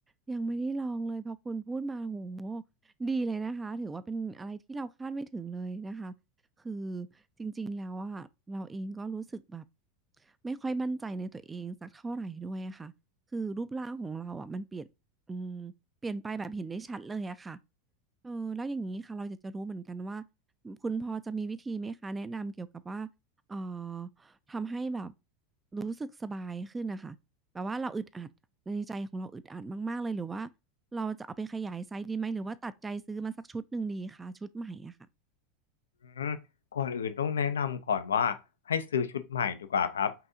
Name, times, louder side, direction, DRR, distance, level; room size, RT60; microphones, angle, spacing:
voice 1, 0.3-2.6 3.0-6.1 6.6-7.1 7.4-9.6 10.4-12.9 13.3-14.8 15.3-15.7 16.0-17.6 18.2-20.2 20.6-23.1 23.5-25.1 25.7-27.2 27.5-28.3 28.7-30.5 30.9-34.9, right 3 dB, 15° right, 0.4 m, -36 dB
voice 2, 36.7-38.4 38.7-40.1, left 7 dB, 85° left, 0.5 m, -29 dB
5.5 x 2.7 x 2.6 m
hypercardioid pair, 95°, 0 cm